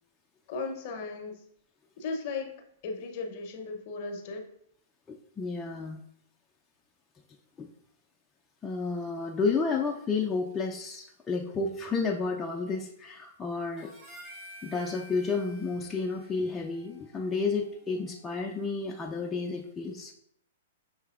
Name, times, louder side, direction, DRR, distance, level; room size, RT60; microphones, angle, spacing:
voice 1, 0.5-1.4 2.0-4.4, left 4 dB, 50° left, 4 dB, 0.7 m, -36 dB
voice 2, 5.1-6.0 7.6-7.7 8.6-13.9 14.6-20.1, left 4 dB, 20° left, 0 dB, 0.4 m, -31 dB
Harmonica, 13.8-18.2, right 1 dB, 30° right, 0.9 m, -51 dB
5.6 x 3.0 x 2.4 m, 0.70 s
hypercardioid pair, 115°, 0 cm